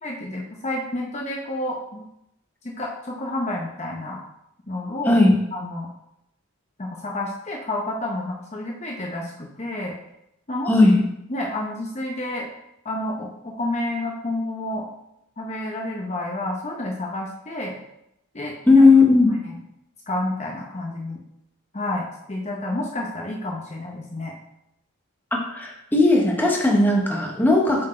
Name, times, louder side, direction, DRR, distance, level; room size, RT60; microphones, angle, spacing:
voice 1, 0.0-2.1 2.6-4.2 4.7-5.2 5.5-5.9 6.8-9.9 10.5-10.7 11.3-12.5 12.8-14.8 15.4-17.8 18.3-18.8 19.3-19.5 20.1-21.2 21.7-24.3, left 1 dB, 30° left, -1 dB, 0.8 m, -30 dB
voice 2, 10.7-11.0 18.7-19.4 25.5-27.9, left 2 dB, 10° left, 0 dB, 1.0 m, -16 dB
7.5 x 4.4 x 4.3 m, 0.82 s
head